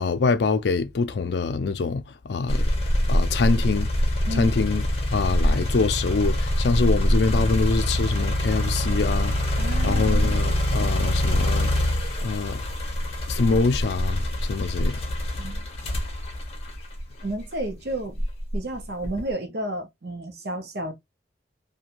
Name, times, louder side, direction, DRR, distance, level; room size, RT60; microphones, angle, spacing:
voice 1, 0.0-2.7 3.1-3.9 4.3-4.9 5.1-11.9 12.2-12.6 13.3-15.0, left 4 dB, 65° left, 0.4 m, -25 dB
sound 1, 2.5-17.5 18.1-19.3, equal, 35° left, 0.7 m, -24 dB
voice 2, 9.6-10.3 15.4-15.6 17.2-18.2 18.5-20.9, right 1 dB, 60° right, 0.7 m, -32 dB
2.5 x 2.2 x 2.9 m
head